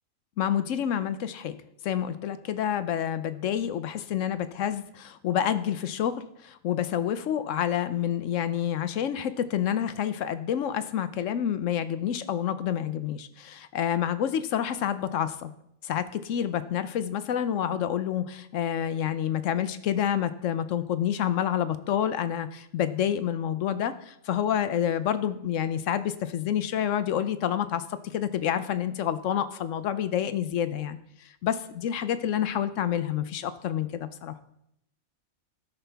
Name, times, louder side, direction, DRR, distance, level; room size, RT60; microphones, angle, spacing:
voice 1, 0.4-1.6 1.8-15.5 15.8-27.8 28.1-34.3, left 9 dB, 65° left, 12 dB, 0.9 m, -28 dB
17.0 x 5.7 x 3.4 m, 0.77 s
omnidirectional pair, 1.5 m